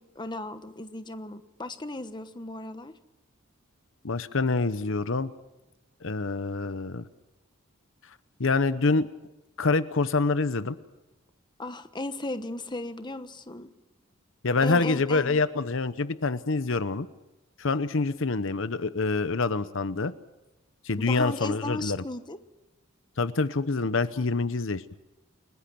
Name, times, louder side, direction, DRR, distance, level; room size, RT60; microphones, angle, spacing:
voice 1, 0.0-2.9 11.6-13.7 14.6-15.4 21.0-22.4 24.2-24.3, left 2 dB, 20° left, 10 dB, 1.1 m, -36 dB
voice 2, 4.0-5.3 6.0-7.0 8.4-9.1 9.6-10.8 14.4-17.1 17.6-20.1 20.8-22.0 23.2-24.8, left 3 dB, 65° left, 13 dB, 0.9 m, -26 dB
29.5 x 20.0 x 6.1 m, 1.0 s
head